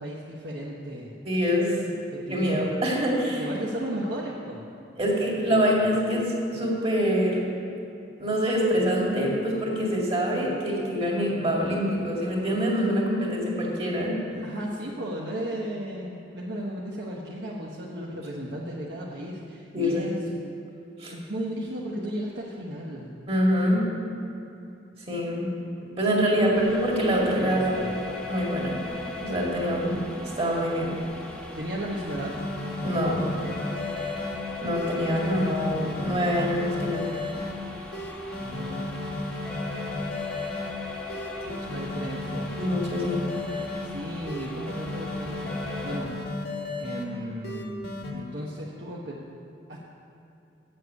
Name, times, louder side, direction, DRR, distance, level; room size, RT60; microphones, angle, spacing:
voice 1, 0.0-1.1 2.1-2.7 3.4-4.6 14.4-20.2 21.1-23.1 26.3-26.7 27.4-27.9 31.5-32.3 38.4-39.0 41.3-42.5 43.8-45.5 45.8-46.1 46.8-47.8 48.1-49.2 49.7-49.8, right 1 dB, 70° right, -5 dB, 1.1 m, -35 dB
voice 2, 1.2-1.8 2.3-3.5 5.0-7.4 8.2-14.2 19.7-20.0 21.0-21.1 23.3-23.9 25.1-25.5 26.0-27.8 28.3-28.8 29.2-30.0 30.4-30.9 32.8-33.3 34.6-37.1 41.4-41.6 42.6-43.2, equal, 35° right, -3 dB, 2.3 m, -25 dB
sound 1, 26.5-46.0, left 2 dB, 5° left, 0.9 m, -39 dB
sound 2, 32.1-34.4 34.7-37.5 37.9-40.7 41.1-43.9 44.3-47.0 47.4-48.1, left 2 dB, 60° left, 1.4 m, -34 dB
8.0 x 7.6 x 8.5 m, 2.8 s
head